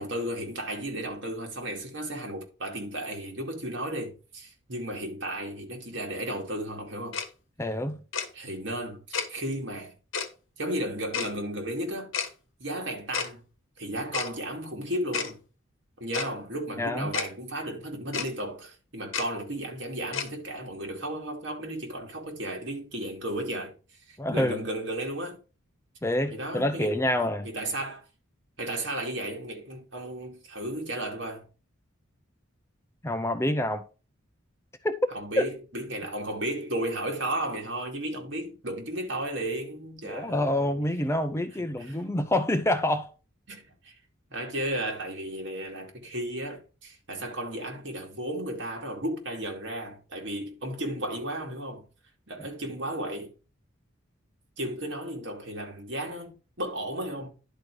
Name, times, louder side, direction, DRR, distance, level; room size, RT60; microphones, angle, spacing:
voice 1, 0.0-7.2 8.3-9.9 10.6-12.1 12.6-13.4 13.8-15.4 16.0-23.7 24.1-25.4 26.3-26.9 27.2-28.0 28.6-31.5 35.1-40.7 41.6-42.0 43.5-43.9 44.3-51.9 52.3-53.3 54.6-57.3, right 1 dB, 60° right, 2.4 m, -34 dB
Tick-tock, 7.1-7.3 8.1-8.3 9.1-9.3 10.1-10.3 11.1-11.3 12.1-12.3 13.1-13.3 14.1-14.3 15.1-15.3 16.1-16.3 17.1-17.3 18.1-18.3 19.1-19.3 20.1-20.3, left 6 dB, 70° left, 1.3 m, -30 dB
voice 2, 7.6-8.0 16.8-17.1 24.2-24.6 26.0-27.5 33.0-33.9 34.8-35.0 35.4-35.5 40.0-43.1 52.4-52.5, left 1 dB, 15° left, 0.5 m, -27 dB
11.0 x 4.4 x 4.8 m
head